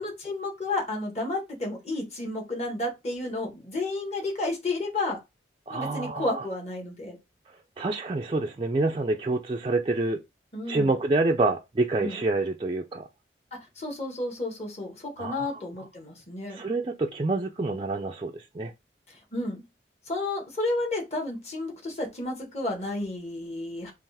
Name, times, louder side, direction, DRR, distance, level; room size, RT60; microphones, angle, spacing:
voice 1, 0.0-5.2 5.7-7.2 10.5-11.0 12.0-12.2 13.5-16.6 19.1-19.6 20.1-23.9, left 2 dB, 35° left, 1.6 m, -32 dB
voice 2, 5.7-6.4 7.8-10.2 10.7-13.0 15.2-15.5 16.5-18.7, right 2 dB, 25° right, 0.4 m, -27 dB
5.5 x 2.5 x 3.4 m
head